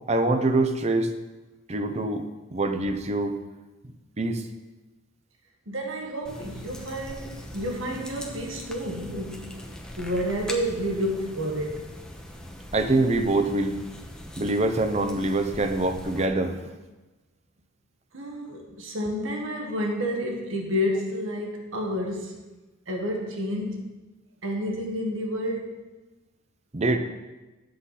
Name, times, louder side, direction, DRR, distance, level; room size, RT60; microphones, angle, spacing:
voice 1, 0.1-1.1 1.7-3.4 4.2-4.5 12.7-13.8 14.4-16.8 26.7-27.0, right 2 dB, 35° right, 7 dB, 0.7 m, -24 dB
voice 2, 5.7-12.0 18.1-22.4 22.9-23.9 24.4-25.8, equal, 70° right, 1 dB, 1.4 m, -30 dB
sound 1, 6.2-16.2, equal, 5° left, 0.9 m, -41 dB
10.0 x 7.7 x 4.1 m, 1.1 s
head